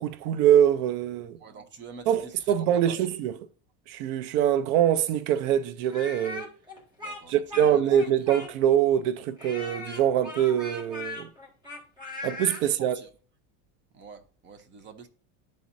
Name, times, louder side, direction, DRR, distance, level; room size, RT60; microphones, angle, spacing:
voice 1, 0.0-1.4 2.1-3.3 3.9-6.5 7.3-11.3 12.2-13.0, right 10 dB, 75° right, 0.6 m, -24 dB
voice 2, 1.4-3.0 7.0-7.9 12.6-13.1 13.9-15.1, right 5 dB, 25° right, 0.7 m, -46 dB
Speech, 5.9-8.8 9.4-12.6, left 2 dB, 10° right, 1.7 m, -39 dB
12.0 x 4.2 x 2.6 m
cardioid pair, 155°, 43 cm